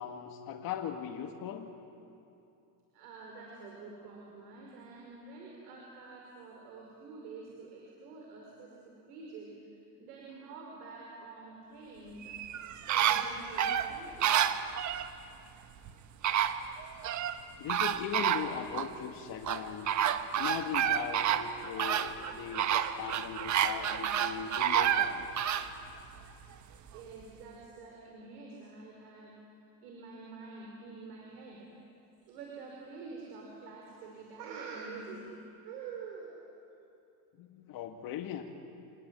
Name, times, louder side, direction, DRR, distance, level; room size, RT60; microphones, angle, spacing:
voice 1, 0.0-1.7 13.3-13.5 17.6-20.0 20.4-25.3 37.4-38.4, left 9 dB, 45° left, 3 dB, 1.9 m, -39 dB
voice 2, 2.9-12.4 12.9-14.5 26.9-29.4 29.8-31.7 32.2-35.3 35.6-36.3, right 4 dB, 75° right, -1 dB, 5.2 m, -47 dB
sound 1, 12.2-15.1 15.9-16.0 16.2-17.4 17.7-18.9 19.4-25.7 26.2-26.3, right 10 dB, 35° right, 1.3 m, -29 dB
27.0 x 20.0 x 9.1 m, 2.7 s
supercardioid pair, 125°, 48 cm